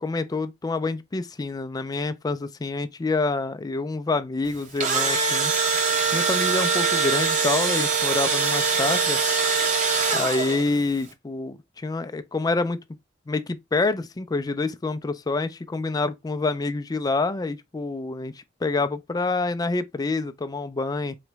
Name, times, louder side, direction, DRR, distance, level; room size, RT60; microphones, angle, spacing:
voice 1, 0.0-5.5 6.1-9.2 10.1-12.8 13.3-21.2, left 3 dB, 20° left, 0.3 m, -27 dB
Engine / Drill, 4.6-10.8, right 5 dB, 40° right, 1.0 m, -23 dB
4.1 x 3.0 x 3.3 m
head